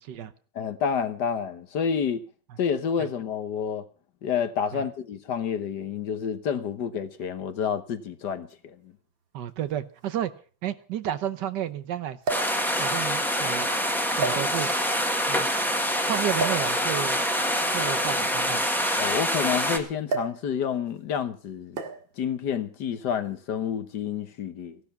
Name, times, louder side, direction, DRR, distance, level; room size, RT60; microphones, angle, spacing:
voice 1, 0.5-2.2 2.6-3.8 4.2-8.9 19.0-21.8 22.2-24.8, left 7 dB, 65° left, 1.6 m, -29 dB
sound 1, 8.5-8.6 9.7-9.8 10.0-10.1 12.2-12.6 13.4-13.6 14.2-14.9 16.4-16.7 17.8-19.5 20.1-20.5 20.7-21.0 21.8-22.1 23.1-23.4, right 4 dB, 85° right, 2.6 m, -32 dB
voice 2, 9.3-10.3 10.6-12.2 12.8-13.7 14.1-14.7 15.3-15.5 16.0-17.2 17.7-18.6, right 10 dB, 70° right, 1.4 m, -31 dB
sound 2, 12.3-19.8, equal, ahead, 1.5 m, -25 dB
15.5 x 12.0 x 5.8 m
omnidirectional pair, 2.1 m